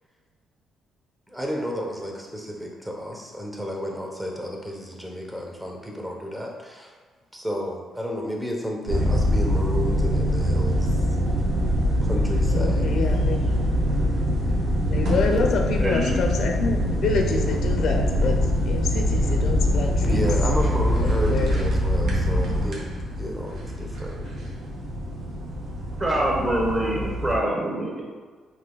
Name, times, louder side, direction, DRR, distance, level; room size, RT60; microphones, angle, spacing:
voice 1, 1.3-6.9 7.3-11.0 12.0-13.0 15.1-15.5 20.0-22.9 23.2-24.2, equal, 10° right, 0 dB, 0.9 m, -31 dB
sound 1, 8.9-27.4, equal, 70° right, 1.0 m, -23 dB
voice 2, 12.5-13.4 14.9-18.4 18.7-20.2 21.0-21.5 26.2-26.3 26.9-27.2, left 4 dB, 70° left, 2 dB, 0.6 m, -27 dB
voice 3, 15.8-16.2 26.0-28.0, right 1 dB, 25° right, -3 dB, 1.3 m, -25 dB
4.2 x 2.9 x 3.8 m, 1.5 s
cardioid pair, 90°, 0 cm